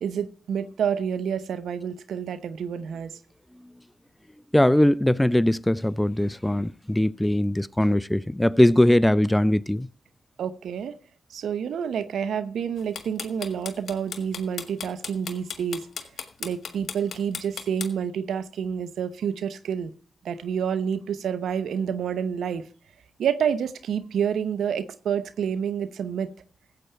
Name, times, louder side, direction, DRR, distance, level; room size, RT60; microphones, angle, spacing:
voice 1, 0.0-3.2 10.4-11.0 11.3-15.8 16.4-19.9 20.2-22.6 23.2-26.3, right 7 dB, 80° right, 0.9 m, -28 dB
voice 2, 4.5-9.9, left 1 dB, 10° left, 0.6 m, -21 dB
sound 1, 12.8-17.9, left 6 dB, 70° left, 1.6 m, -34 dB
14.5 x 8.2 x 4.4 m
supercardioid pair, 40°, 0 cm